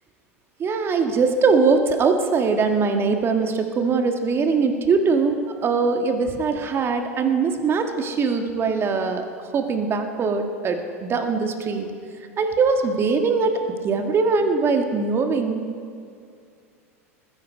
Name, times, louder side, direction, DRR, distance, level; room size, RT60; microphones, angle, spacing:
voice 1, 0.6-5.4 5.6-9.3 9.5-11.9 12.4-15.6, right 4 dB, 30° right, 5 dB, 1.7 m, -21 dB
20.5 x 10.0 x 5.2 m, 2.4 s
hypercardioid pair, 85°, 8 cm